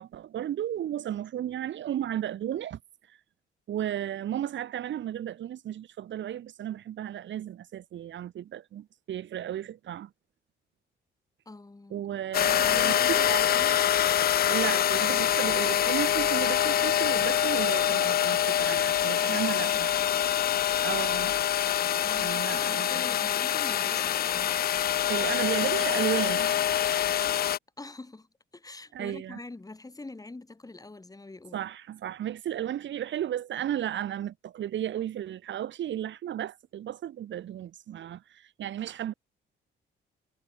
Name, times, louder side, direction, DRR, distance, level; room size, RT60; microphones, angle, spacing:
voice 1, 0.0-2.8 3.1-3.2 3.7-10.1 11.9-13.5 14.5-19.9 20.8-21.4 22.2-23.3 25.0-26.6 28.9-29.4 31.5-39.1, right 11 dB, 70° right, 3.3 m, -34 dB
voice 2, 11.5-12.0 12.5-13.8 19.2-20.1 22.0-25.3 27.8-31.7, left 2 dB, 20° left, 5.4 m, -45 dB
sound 1, 12.3-27.6, left 11 dB, 50° left, 0.5 m, -25 dB
cardioid pair, 90°, 20 cm